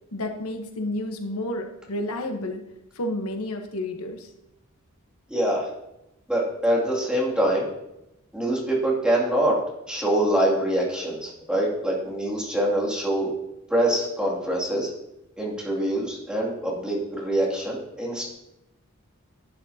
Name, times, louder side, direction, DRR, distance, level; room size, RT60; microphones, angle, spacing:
voice 1, 0.1-2.6 2.9-4.3, left 1 dB, 85° left, 4 dB, 1.1 m, -30 dB
voice 2, 5.3-5.7 6.3-7.6 8.3-9.6 9.9-13.3 13.7-14.9 15.4-18.3, right 1 dB, 5° right, -4 dB, 2.5 m, -24 dB
11.5 x 8.9 x 2.8 m, 0.89 s
head